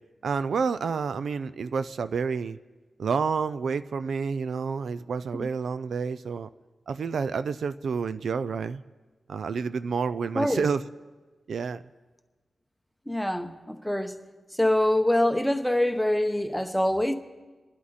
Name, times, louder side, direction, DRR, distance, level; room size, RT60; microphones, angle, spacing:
voice 1, 0.2-2.6 3.0-6.5 6.9-8.8 9.3-10.8 11.5-11.8, right 5 dB, 70° right, 13 dB, 0.4 m, -29 dB
voice 2, 13.1-14.1 14.6-17.1, left 1 dB, ahead, 6 dB, 0.9 m, -24 dB
28.0 x 11.5 x 4.2 m, 1.3 s
wide cardioid pair, 155°, 0 cm